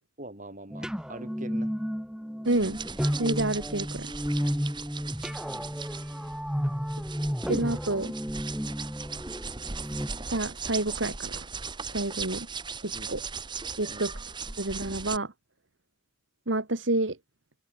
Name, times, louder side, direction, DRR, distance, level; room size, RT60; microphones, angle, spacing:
voice 1, 0.2-1.7 5.5-5.8 12.9-13.1 13.9-14.0, right 1 dB, 40° right, 5.2 m, -43 dB
sound 1, 0.7-10.1, equal, 5° right, 3.1 m, -32 dB
sound 2, 2.5-15.2, right 5 dB, 25° right, 1.4 m, -38 dB
voice 2, 2.5-2.8 3.2-4.1 7.5-8.1 10.3-11.4 11.9-12.5 12.8-13.2 13.8-14.1 14.6-15.3 16.5-17.2, right 2 dB, 70° right, 2.3 m, -28 dB
open air
head